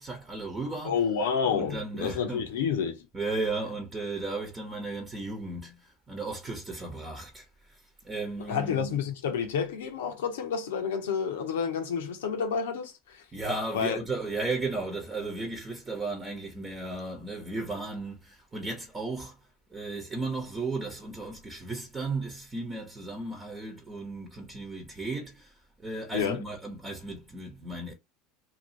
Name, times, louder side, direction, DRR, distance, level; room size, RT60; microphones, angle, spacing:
voice 1, 0.0-1.0 1.5-2.5 3.1-7.4 8.0-8.9 13.3-19.3 19.7-25.5 25.8-27.9, right 3 dB, 25° right, 1.1 m, -35 dB
voice 2, 0.8-3.1 8.4-13.2 13.7-14.0 26.1-26.4, left 7 dB, 80° left, 0.7 m, -29 dB
2.8 x 2.6 x 2.8 m
hypercardioid pair, 80°, 0 cm